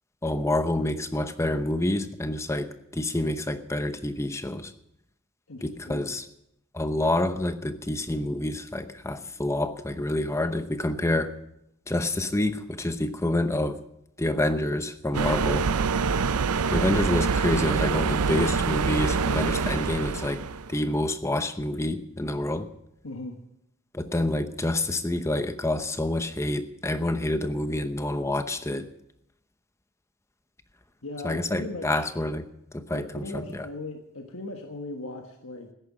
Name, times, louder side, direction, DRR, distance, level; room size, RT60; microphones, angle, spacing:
voice 1, 0.2-4.7 5.6-6.3 6.7-11.3 11.9-13.8 14.2-15.6 16.7-20.4 20.7-22.7 23.9-28.9 31.2-32.5 32.7-33.4, left 1 dB, 10° left, 10 dB, 0.8 m, -27 dB
voice 2, 5.5-6.1 15.2-15.4 23.0-23.4 31.0-32.0 32.9-35.7, left 2 dB, 65° left, 3 dB, 1.5 m, -38 dB
sound 1, 15.1-20.7, right 5 dB, 85° right, 0.6 m, -25 dB
14.5 x 10.5 x 7.3 m, 0.80 s
head